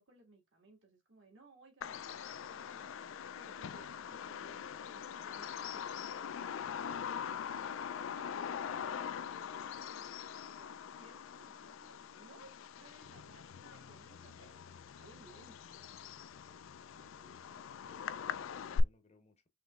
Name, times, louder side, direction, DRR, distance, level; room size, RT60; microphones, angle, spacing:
voice 1, 0.0-15.7, right 2 dB, 65° right, 2.0 m, -62 dB
Bird vocalization bird call bird song, 1.8-18.8, left 7 dB, 70° left, 0.3 m, -42 dB
voice 2, 17.0-19.5, left 3 dB, 30° left, 0.8 m, -66 dB
5.6 x 3.0 x 2.3 m
head